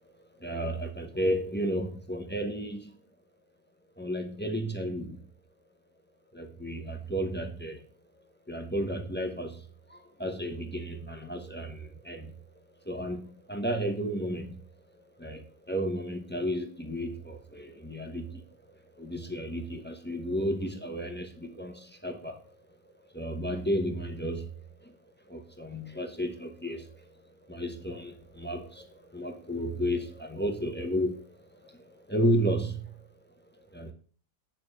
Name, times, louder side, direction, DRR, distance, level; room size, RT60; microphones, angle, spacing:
voice 1, 0.2-3.0 4.0-5.3 6.3-7.8 8.5-12.4 12.8-14.7 15.0-22.5 23.1-24.9 25.2-33.1 33.7-33.9, equal, 10° left, 4 dB, 0.7 m, -33 dB
9.2 x 4.3 x 6.4 m, 0.42 s
omnidirectional pair, 1.8 m